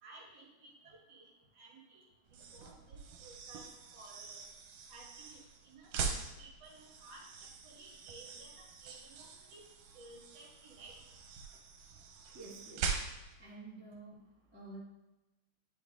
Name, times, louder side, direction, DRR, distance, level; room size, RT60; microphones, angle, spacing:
voice 1, 0.0-1.3 1.6-3.7 3.9-4.4 4.9-5.9 6.4-7.3 7.6-9.6 9.9-11.0, right 2 dB, 55° right, -2 dB, 2.5 m, -56 dB
sound 1, 2.3-13.4, right 5 dB, 80° right, 2.3 m, -43 dB
voice 2, 12.3-12.9 13.4-14.8, right 2 dB, 35° left, -7 dB, 0.4 m, -50 dB
10.5 x 3.7 x 3.9 m, 1.0 s
omnidirectional pair, 3.7 m